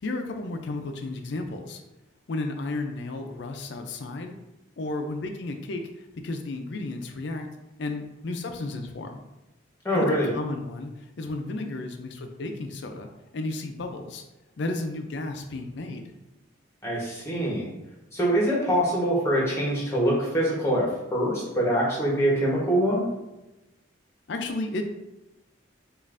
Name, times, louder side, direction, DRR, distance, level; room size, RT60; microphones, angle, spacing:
voice 1, 0.0-1.8 2.3-4.3 4.8-7.5 7.8-9.2 9.9-10.9 11.2-13.1 13.3-14.2 14.6-16.1 24.3-24.9, left 2 dB, 60° left, 5 dB, 0.4 m, -33 dB
voice 2, 9.8-10.3 16.8-17.7 18.1-23.1, equal, 15° left, -5 dB, 1.0 m, -24 dB
5.2 x 2.5 x 2.5 m, 0.99 s
head